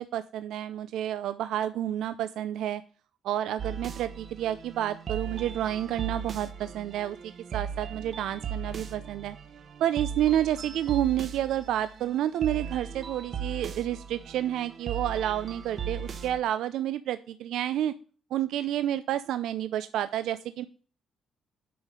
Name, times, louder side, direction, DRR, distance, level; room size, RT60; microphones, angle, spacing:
voice 1, 0.0-2.8 3.2-7.2 7.5-9.4 9.8-17.9 18.3-20.6, right 11 dB, 80° right, 12 dB, 0.5 m, -29 dB
sound 1, 3.6-16.4, right 7 dB, 50° right, 1.0 m, -38 dB
8.6 x 5.6 x 7.8 m, 0.39 s
cardioid pair, 90°, 0 cm